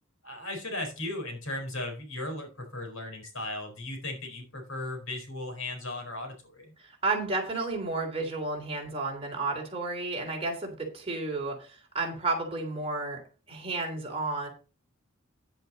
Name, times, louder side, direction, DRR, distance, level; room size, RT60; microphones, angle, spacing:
voice 1, 0.2-6.7, left 2 dB, 80° left, 3 dB, 4.6 m, -36 dB
voice 2, 6.8-13.2 13.5-14.5, right 3 dB, 30° right, 1 dB, 3.3 m, -32 dB
10.0 x 8.1 x 4.1 m, 0.33 s
head